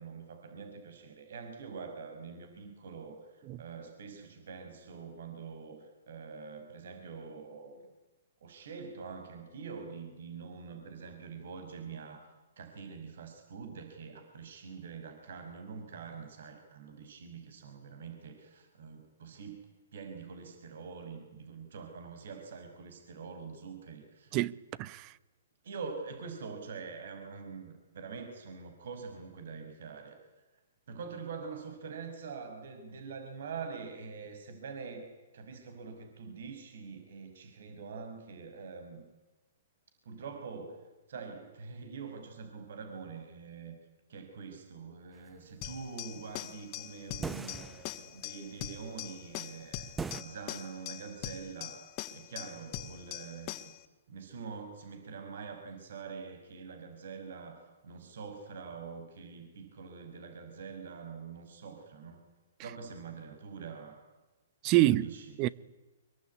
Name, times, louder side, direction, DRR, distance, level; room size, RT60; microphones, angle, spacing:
voice 1, 0.0-7.8 8.4-12.3 12.6-19.7 19.9-24.4 25.6-30.2 30.9-35.1 35.3-39.0 40.1-43.7 44.1-51.8 52.1-53.6 54.1-62.2 62.6-64.0 64.7-65.4, right 5 dB, 65° right, 5.6 m, -45 dB
voice 2, 24.8-25.1 64.6-65.1 65.4-65.5, right 17 dB, 35° right, 1.0 m, -25 dB
sound 1, 45.6-53.8, left 12 dB, 40° left, 2.4 m, -42 dB
sound 2, 47.2-48.0 50.0-50.2, right 4 dB, 10° right, 1.0 m, -38 dB
25.5 x 23.0 x 9.7 m
hypercardioid pair, 125°, 0 cm